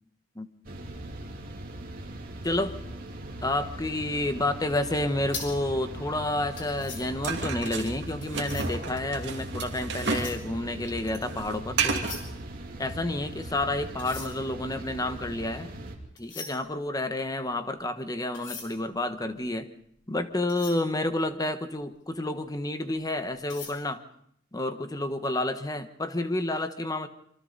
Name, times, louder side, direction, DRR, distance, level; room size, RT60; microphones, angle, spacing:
sound 1, 0.6-16.0, right 1 dB, 50° right, 3.0 m, -40 dB
voice 1, 2.4-2.8 3.4-12.1 12.8-15.7 16.2-19.7 20.1-24.0 24.5-27.1, left 1 dB, 20° left, 9 dB, 1.3 m, -30 dB
sound 2, 4.9-8.9 9.7-11.4 11.7-13.4 13.9-21.9 22.3-22.5 22.9-23.7, left 5 dB, 75° left, 4.6 m, -44 dB
sound 3, 7.2-10.4 10.6-12.2, right 4 dB, 65° right, 2.5 m, -31 dB
26.0 x 24.5 x 4.1 m, 0.66 s
head